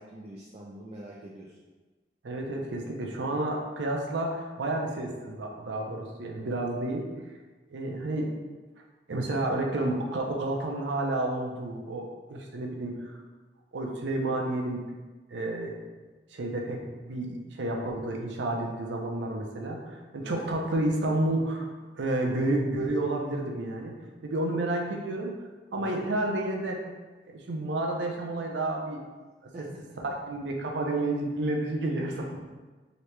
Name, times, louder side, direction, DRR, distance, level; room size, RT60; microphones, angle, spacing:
voice 1, 0.0-1.6 7.9-8.0 20.2-20.4 25.8-26.1 29.5-29.7, right 1 dB, 35° right, -3 dB, 0.3 m, -45 dB
voice 2, 2.2-7.1 7.7-8.3 9.1-13.1 13.7-14.8 15.3-15.7 16.3-21.7 22.0-24.0 24.2-25.3 25.7-26.8 27.3-29.0 29.6-29.7 30.0-32.4, right 2 dB, 85° right, 1 dB, 0.5 m, -30 dB
3.0 x 2.8 x 3.2 m, 1.3 s
head